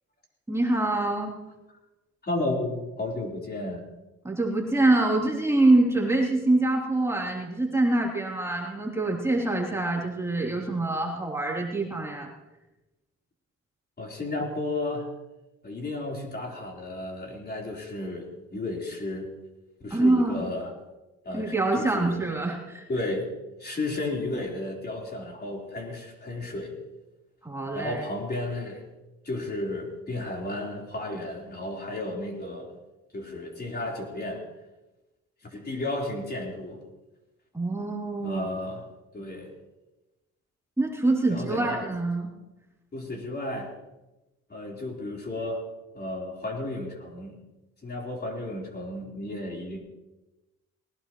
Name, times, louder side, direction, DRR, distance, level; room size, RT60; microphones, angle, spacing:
voice 1, 0.5-1.3 4.2-12.3 19.9-20.4 21.3-22.8 27.4-28.0 37.5-38.5 40.8-42.3, right 2 dB, 10° right, -3 dB, 3.4 m, -25 dB
voice 2, 2.2-3.8 14.0-15.1 15.6-19.3 19.8-20.7 21.2-22.2 22.9-23.3 23.6-26.8 27.7-28.8 29.2-32.7 33.1-34.4 35.4-36.8 38.2-38.8 39.1-39.5 41.3-41.8 42.9-43.7 44.5-45.6 45.9-47.4 47.8-49.8, left 2 dB, 30° left, -1 dB, 4.1 m, -33 dB
20.5 x 18.5 x 3.1 m, 1.0 s
cardioid pair, 90°, 30 cm